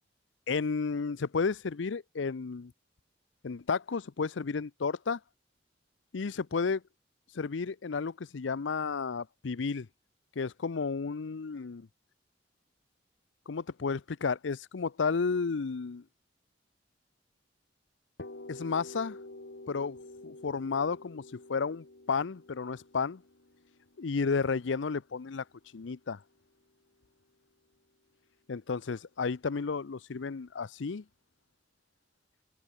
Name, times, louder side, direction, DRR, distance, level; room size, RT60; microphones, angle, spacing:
voice 1, 0.5-2.7 3.4-5.2 6.1-6.8 7.3-9.9 10.4-11.9 13.5-16.0 18.5-19.2 19.7-20.0 20.2-23.2 24.0-25.4 25.7-26.2 28.5-31.0, left 5 dB, 90° left, 0.6 m, -32 dB
sound 1, 18.2-25.9, left 2 dB, 70° left, 1.8 m, -49 dB
head